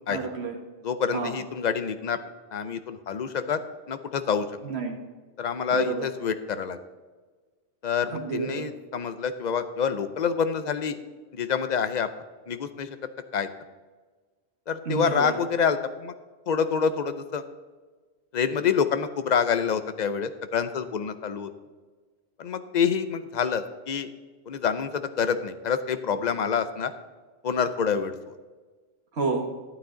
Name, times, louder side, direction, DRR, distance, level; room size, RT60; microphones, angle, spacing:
voice 1, 0.1-0.6 1.1-1.3 4.6-5.0 5.7-6.1 8.1-8.7 14.9-15.3 29.1-29.5, right 4 dB, 70° right, 1 dB, 1.8 m, -30 dB
voice 2, 0.8-2.2 2.5-3.6 3.9-4.4 5.4-6.8 7.8-11.0 11.3-12.1 12.5-12.9 13.3-13.5 14.7-16.1 16.5-17.4 18.3-21.5 22.4-24.1 24.5-26.9 27.4-28.1, left 6 dB, 50° left, 11 dB, 0.7 m, -27 dB
12.5 x 8.7 x 3.9 m, 1.4 s
omnidirectional pair, 1.1 m